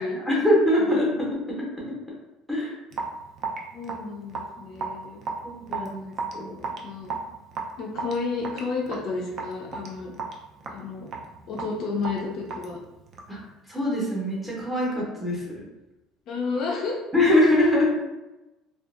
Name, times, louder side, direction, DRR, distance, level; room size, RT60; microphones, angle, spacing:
voice 1, 0.0-1.9 2.5-2.7 5.4-6.5 13.3-13.4 13.7-15.6 17.1-17.8, left 1 dB, 5° right, -4 dB, 0.7 m, -23 dB
Raindrop / Drip, 2.9-13.4, right 4 dB, 35° right, 0.4 m, -35 dB
voice 2, 3.7-5.2 5.7-5.9 6.8-7.2 7.8-10.1 10.7-11.1 11.5-12.8 16.3-17.0, left 4 dB, 45° left, -1 dB, 0.4 m, -31 dB
2.7 x 2.3 x 2.3 m, 1.0 s
cardioid pair, 165°, 0 cm